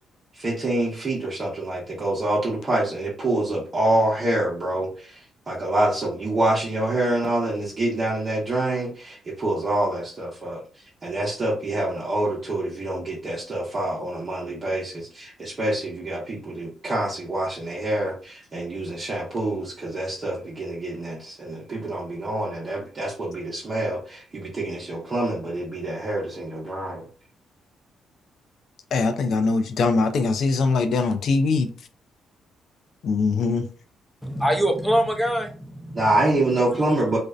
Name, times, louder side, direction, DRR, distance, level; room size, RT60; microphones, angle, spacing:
voice 1, 0.4-4.9 5.5-10.6 11.0-27.0 35.9-37.2, right 1 dB, 35° right, 0.8 m, -26 dB
voice 2, 28.9-31.7 33.0-33.7, left 4 dB, 65° left, 0.4 m, -22 dB
voice 3, 34.2-36.1 36.7-36.8, right 1 dB, ahead, 0.6 m, -24 dB
2.5 x 2.1 x 2.4 m
cardioid pair, 90°, 0 cm